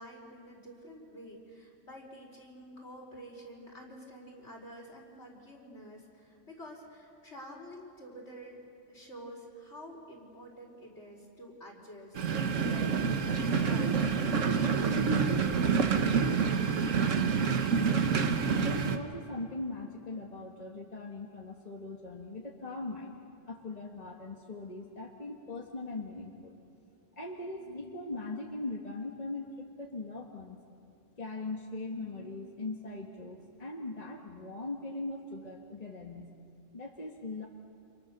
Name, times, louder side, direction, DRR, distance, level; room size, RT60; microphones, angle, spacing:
voice 1, 0.0-8.6 8.9-12.2 12.5-16.2, equal, 60° left, 0 dB, 4.9 m, -49 dB
sound 1, 12.2-19.0, right 5 dB, 75° right, 1.6 m, -27 dB
voice 2, 17.8-18.1 18.5-23.2 23.5-26.6 27.1-30.6 31.2-36.3 36.7-37.5, left 2 dB, 30° left, 0 dB, 1.8 m, -40 dB
29.5 x 27.5 x 6.8 m, 2.6 s
omnidirectional pair, 1.3 m